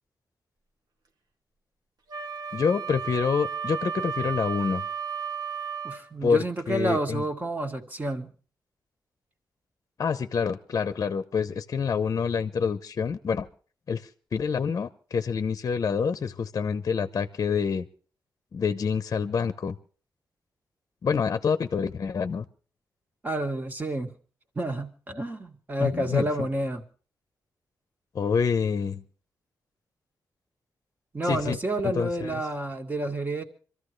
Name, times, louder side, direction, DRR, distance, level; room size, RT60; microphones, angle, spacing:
Wind instrument woodwind instrument, 2.1-6.1, right 7 dB, 75° right, 2.3 m, -33 dB
voice 1, 2.5-4.8 6.2-7.2 10.0-13.5 13.9-17.9 18.5-19.7 21.0-22.4 25.8-26.3 28.1-29.0 31.2-31.6 31.8-32.4, left 6 dB, 50° left, 0.8 m, -27 dB
voice 2, 5.8-8.3 23.2-24.1 24.6-26.8 31.1-33.4, right 1 dB, 25° right, 2.1 m, -29 dB
25.5 x 14.0 x 3.3 m
wide cardioid pair, 125°, 7 cm